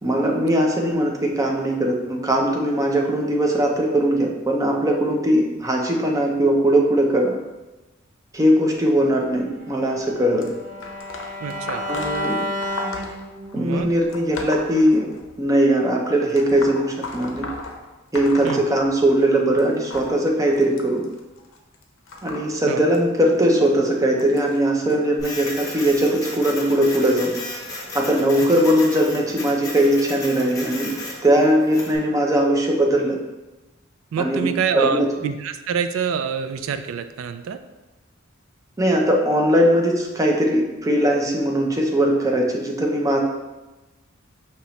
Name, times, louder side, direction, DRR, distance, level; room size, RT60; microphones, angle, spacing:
voice 1, 0.0-7.4 8.3-10.5 11.9-12.4 13.5-15.1 15.4-17.5 18.1-21.0 22.2-27.3 27.9-30.9 31.2-33.2 34.2-34.5 34.7-35.1 38.8-43.2, right 1 dB, 15° right, 0 dB, 0.6 m, -20 dB
Bowed string instrument, 9.5-13.7, left 1 dB, 45° right, 0.9 m, -31 dB
sound 1, 10.4-15.5 16.3-19.3 19.6-24.9 25.7-26.0 27.0-27.1 28.0-28.1 28.8-28.9, left 3 dB, 75° left, 0.6 m, -37 dB
voice 2, 11.4-11.9 13.5-13.9 18.4-18.6 22.7-22.8 34.1-37.6, right 6 dB, 85° right, 10 dB, 0.3 m, -26 dB
Printer, 25.2-32.0, left 2 dB, 20° left, 0.9 m, -34 dB
5.2 x 2.9 x 3.1 m, 1.1 s
head